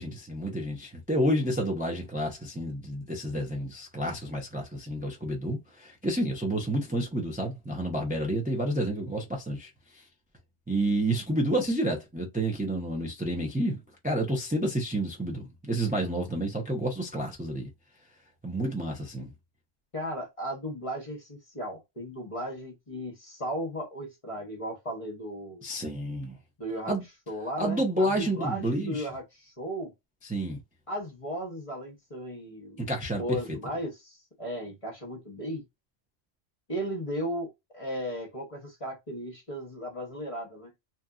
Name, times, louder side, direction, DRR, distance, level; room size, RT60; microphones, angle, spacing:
voice 1, 0.0-10.0 10.7-13.8 14.0-17.7 18.4-19.3 25.6-26.4 26.9-27.0 27.6-29.1 30.2-30.6 32.8-33.6, right 1 dB, 10° right, 0.6 m, -30 dB
voice 2, 19.9-25.6 26.6-26.9 27.3-29.9 30.9-32.8 33.1-35.6 36.7-40.7, equal, 30° left, 1.0 m, -36 dB
2.9 x 2.5 x 2.3 m
omnidirectional pair, 1.2 m